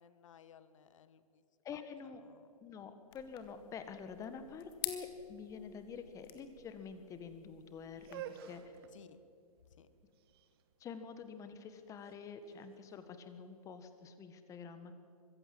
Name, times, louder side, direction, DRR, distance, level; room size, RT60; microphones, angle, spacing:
voice 1, 0.0-1.4 1.7-1.8 2.2-2.5 8.9-9.2 9.7-9.9, left 8 dB, 55° left, 14 dB, 1.4 m, -59 dB
voice 2, 1.6-2.2 2.6-8.8 10.8-14.9, left 6 dB, 15° left, 10 dB, 1.5 m, -47 dB
sound 1, 3.1-8.1, left 13 dB, 35° left, 1.8 m, -48 dB
sound 2, 7.9-13.9, right 9 dB, 40° right, 1.4 m, -52 dB
23.5 x 15.5 x 7.8 m, 2.6 s
figure-of-eight pair, 130°, 20 cm